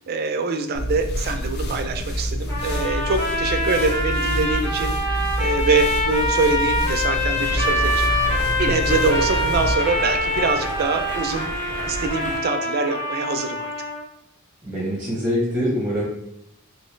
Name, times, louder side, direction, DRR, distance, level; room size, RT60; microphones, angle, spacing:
voice 1, 0.1-11.5 11.8-13.7, right 3 dB, 45° right, 7 dB, 0.4 m, -24 dB
sound 1, 0.7-9.8, equal, 50° left, 0.4 m, -27 dB
sound 2, 2.5-14.0, left 1 dB, 15° left, 1.4 m, -25 dB
Stream, 7.4-12.4, equal, 70° left, 1.2 m, -33 dB
voice 2, 14.6-16.0, equal, 10° right, -6 dB, 0.8 m, -24 dB
3.0 x 2.7 x 3.1 m, 0.80 s
head